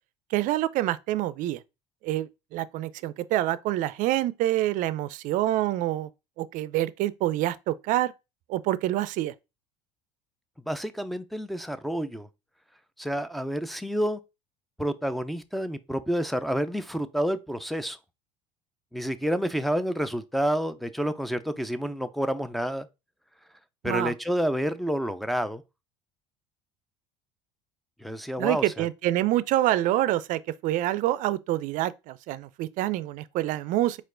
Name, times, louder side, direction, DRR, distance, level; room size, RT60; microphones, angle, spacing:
voice 1, 0.3-1.6 2.0-6.1 6.4-8.1 8.5-9.3 23.8-24.1 28.4-34.0, right 14 dB, 60° right, 0.4 m, -26 dB
voice 2, 10.7-12.3 13.0-14.2 14.8-18.0 18.9-22.9 23.8-25.6 28.0-28.9, equal, ahead, 0.4 m, -29 dB
4.4 x 2.4 x 3.7 m
supercardioid pair, 95°, 15 cm